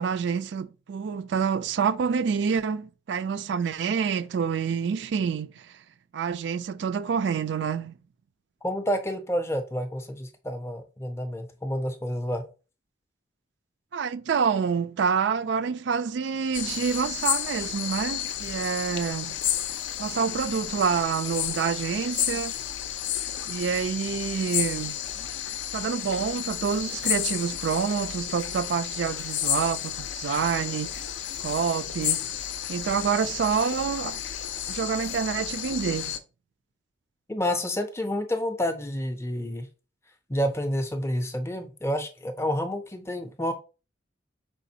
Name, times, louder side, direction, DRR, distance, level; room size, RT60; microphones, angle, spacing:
voice 1, 0.0-5.7 6.1-7.9 13.9-19.4 20.0-22.5 23.5-25.0 25.7-31.0 31.4-32.3 32.7-34.2 34.7-36.2, right 6 dB, 65° right, 0.3 m, -27 dB
voice 2, 8.6-12.4 37.3-39.7 40.3-43.5, equal, 15° left, 0.5 m, -29 dB
sound 1, 16.5-36.2, left 10 dB, 70° left, 0.5 m, -32 dB
5.0 x 3.8 x 2.7 m
head